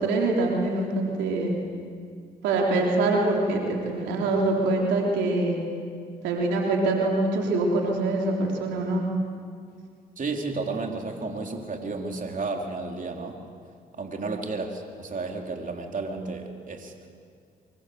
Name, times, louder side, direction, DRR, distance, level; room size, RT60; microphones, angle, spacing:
voice 1, 0.0-1.5 2.4-5.6 6.2-9.0, right 2 dB, 90° right, -1 dB, 3.7 m, -24 dB
voice 2, 10.2-13.4 14.0-17.1, right 3 dB, 45° right, 2 dB, 3.5 m, -32 dB
25.0 x 23.5 x 7.9 m, 2.2 s
supercardioid pair, 55°, 18 cm